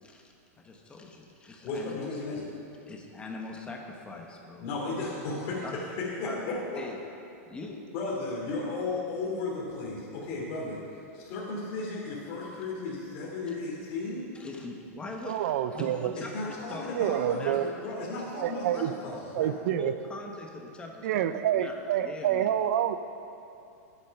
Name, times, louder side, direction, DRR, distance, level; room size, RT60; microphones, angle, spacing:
voice 1, 0.0-2.1 2.9-4.7 5.6-5.8 6.2-6.5 6.7-7.0 7.5-7.8 14.3-17.7 18.1-19.2 19.6-22.6, left 3 dB, 10° left, 1 dB, 1.1 m, -42 dB
voice 2, 1.6-2.5 4.6-5.6 6.0-6.1 6.5-6.6 7.9-10.8 11.1-14.3 16.3-17.5 17.8-19.5, left 3 dB, 40° left, -6 dB, 2.7 m, -34 dB
voice 3, 15.3-16.1 17.0-17.7 18.4-18.9 19.3-19.9 21.0-23.0, right 11 dB, 60° right, 12 dB, 0.6 m, -27 dB
12.0 x 8.3 x 5.8 m, 2.7 s
supercardioid pair, 150°, 8 cm